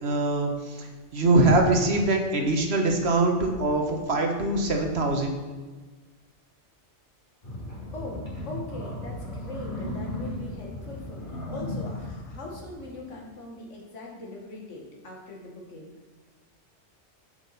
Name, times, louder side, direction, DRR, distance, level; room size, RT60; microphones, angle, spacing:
voice 1, 0.0-0.9 1.1-5.4, right 2 dB, 65° right, 3 dB, 1.4 m, -23 dB
sound 1, 7.4-13.1, left 1 dB, 30° left, 2.5 m, -36 dB
voice 2, 7.9-15.9, left 2 dB, 85° left, -1 dB, 2.1 m, -41 dB
7.8 x 7.4 x 4.2 m, 1.3 s
omnidirectional pair, 1.2 m